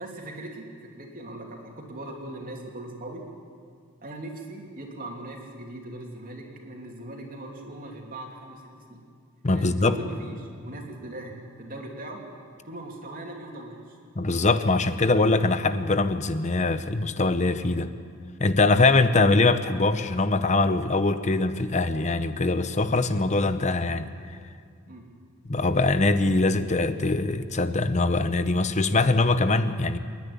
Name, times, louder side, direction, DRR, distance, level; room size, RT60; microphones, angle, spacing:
voice 1, 0.0-3.2 4.0-9.0 9.5-12.2 12.6-14.0 24.9-25.1, right 1 dB, 45° right, 1 dB, 3.0 m, -39 dB
voice 2, 9.4-10.0 14.1-17.9 18.4-24.1 25.4-30.0, left 3 dB, 35° left, 11 dB, 0.9 m, -22 dB
27.5 x 10.5 x 9.9 m, 2.2 s
head